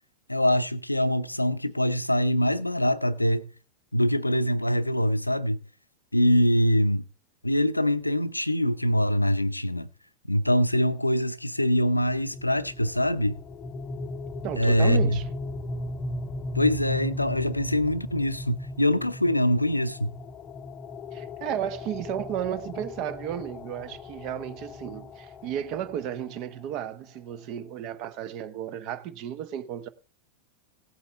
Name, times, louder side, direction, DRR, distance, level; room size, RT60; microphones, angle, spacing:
voice 1, 0.3-3.5 3.9-5.6 6.1-7.1 7.4-9.9 10.3-13.4 14.6-15.2 16.5-20.1, left 1 dB, 85° left, 0.5 m, -24 dB
sound 1, 12.1-26.9, left 2 dB, 20° left, 0.7 m, -37 dB
voice 2, 14.4-15.3 21.1-29.9, right 10 dB, 40° right, 0.8 m, -33 dB
16.5 x 8.2 x 3.4 m
figure-of-eight pair, 90°, 0 cm